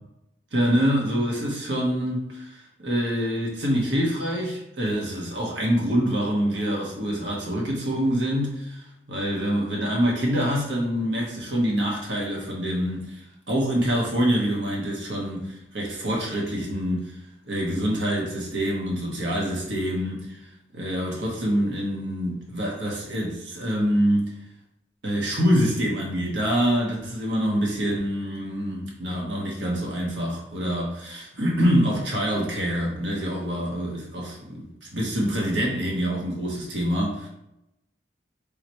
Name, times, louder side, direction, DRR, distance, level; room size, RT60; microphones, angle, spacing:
voice 1, 0.5-13.2 13.5-17.1 17.5-20.4 20.7-24.3 25.0-37.3, equal, 85° right, -2 dB, 1.1 m, -25 dB
3.7 x 3.0 x 4.4 m, 0.87 s
head